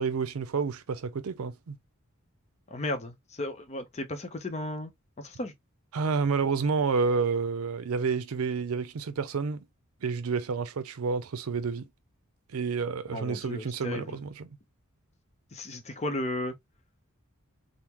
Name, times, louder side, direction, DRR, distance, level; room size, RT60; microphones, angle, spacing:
voice 1, 0.0-1.8 5.9-9.7 10.0-11.9 12.5-14.5, right 5 dB, 80° right, 0.5 m, -29 dB
voice 2, 2.7-4.9 5.2-5.5 13.1-14.2 15.5-16.5, left 1 dB, 30° left, 0.6 m, -34 dB
3.6 x 2.1 x 2.9 m
head